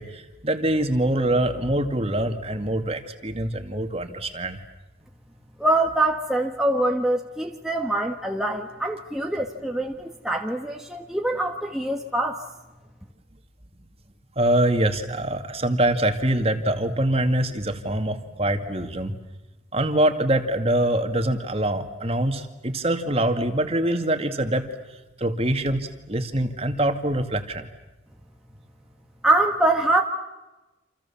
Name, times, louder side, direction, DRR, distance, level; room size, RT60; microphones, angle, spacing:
voice 1, 0.0-4.6 14.4-19.1 19.7-24.6 25.2-27.7, right 1 dB, 30° right, 6 dB, 2.3 m, -24 dB
voice 2, 5.6-12.4 29.2-30.0, right 2 dB, ahead, 1 dB, 1.5 m, -24 dB
28.5 x 28.0 x 7.3 m, 1.1 s
head